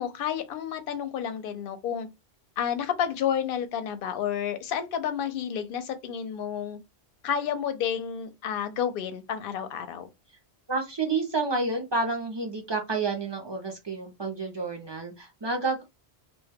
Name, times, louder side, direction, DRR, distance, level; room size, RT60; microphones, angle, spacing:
voice 1, 0.0-2.1 2.6-6.8 7.2-10.1, left 8 dB, 60° left, 0.6 m, -30 dB
voice 2, 10.7-15.8, right 3 dB, 45° right, 0.3 m, -29 dB
2.1 x 2.1 x 3.3 m
omnidirectional pair, 1.1 m